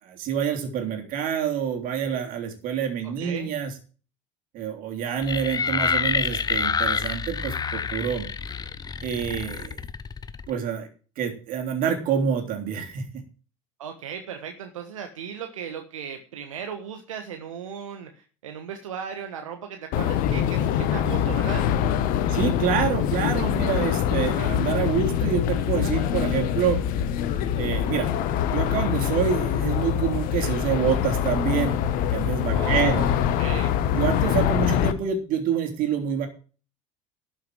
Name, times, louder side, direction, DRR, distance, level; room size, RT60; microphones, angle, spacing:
voice 1, 0.0-3.7 4.5-8.3 9.0-9.8 10.5-10.9 11.2-13.0 22.3-26.8 27.6-28.1 28.5-31.8 32.1-33.0 33.9-36.3, right 8 dB, 60° right, 4 dB, 3.3 m, -27 dB
voice 2, 3.0-3.5 13.8-21.7 32.5-33.7, right 7 dB, 85° right, 5 dB, 1.3 m, -36 dB
sound 1, 5.2-10.5, left 6 dB, 25° left, 0.8 m, -28 dB
sound 2, 19.9-34.9, left 9 dB, 60° left, 1.3 m, -24 dB
12.5 x 6.6 x 7.6 m, 0.39 s
hypercardioid pair, 75°, 16 cm